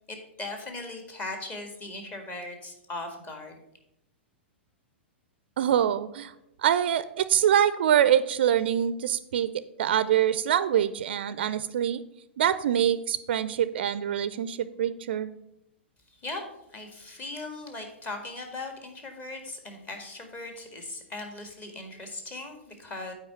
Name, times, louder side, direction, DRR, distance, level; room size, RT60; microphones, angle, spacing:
voice 1, 0.1-3.6 16.1-16.4 16.7-23.1, left 2 dB, 25° left, 4 dB, 1.7 m, -39 dB
voice 2, 5.6-6.3 6.6-9.5 9.8-12.0 12.4-15.3, right 10 dB, 65° right, 15 dB, 0.4 m, -24 dB
8.3 x 4.8 x 5.8 m, 0.85 s
figure-of-eight pair, 105°, 6 cm